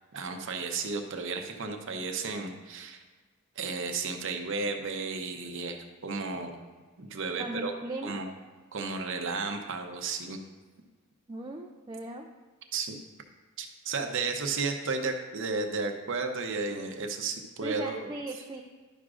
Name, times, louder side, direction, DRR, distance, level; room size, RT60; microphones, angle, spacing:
voice 1, 0.1-3.0 3.6-6.6 7.0-7.7 8.0-8.3 8.7-10.4 12.7-13.0 13.6-18.1, right 4 dB, 60° right, 4 dB, 0.7 m, -33 dB
voice 2, 7.4-8.2 11.3-12.3 17.6-18.6, right 2 dB, 20° right, 1 dB, 0.4 m, -38 dB
11.0 x 6.1 x 2.5 m, 1.4 s
head